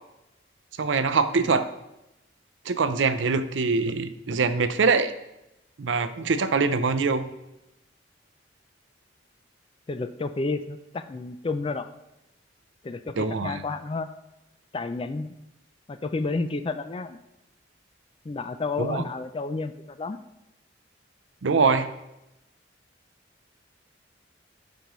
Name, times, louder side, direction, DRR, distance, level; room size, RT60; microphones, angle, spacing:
voice 1, 0.8-1.7 2.7-5.1 5.8-7.3 13.2-13.6 18.8-19.0 21.4-21.9, right 4 dB, 75° right, 11 dB, 0.5 m, -23 dB
voice 2, 9.9-11.9 12.8-14.1 14.7-15.4 15.9-17.2 18.2-20.2, left 3 dB, 25° left, 11 dB, 0.3 m, -31 dB
12.5 x 5.2 x 3.1 m, 0.91 s
head